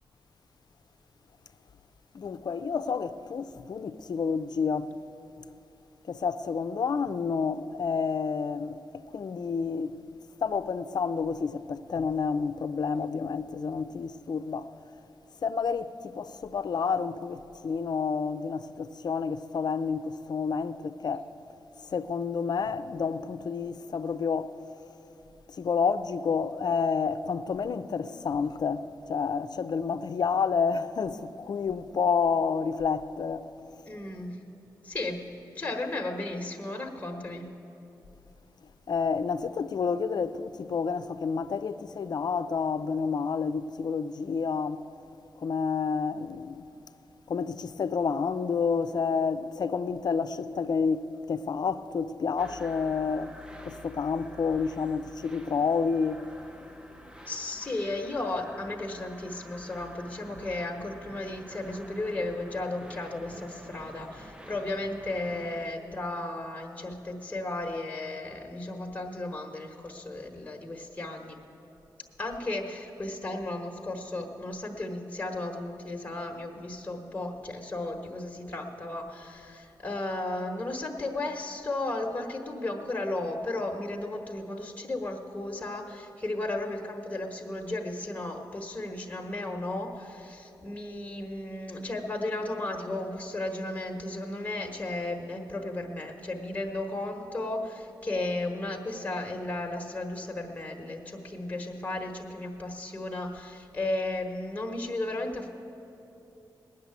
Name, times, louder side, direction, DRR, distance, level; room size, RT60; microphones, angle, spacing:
voice 1, 2.1-4.9 6.1-8.8 9.1-10.0 10.4-14.7 15.4-21.3 21.9-24.5 25.6-28.8 29.1-33.4 38.9-44.8 45.4-46.6 47.3-53.3 53.7-56.2, left 5 dB, 60° left, 0.5 m, -29 dB
voice 2, 33.9-34.4 34.8-35.3 35.5-37.5 57.3-71.4 72.2-105.5, left 2 dB, 20° left, 1.3 m, -34 dB
sound 1, 52.4-65.7, equal, 10° right, 0.7 m, -49 dB
18.5 x 6.6 x 9.4 m
wide cardioid pair, 90°, 8 cm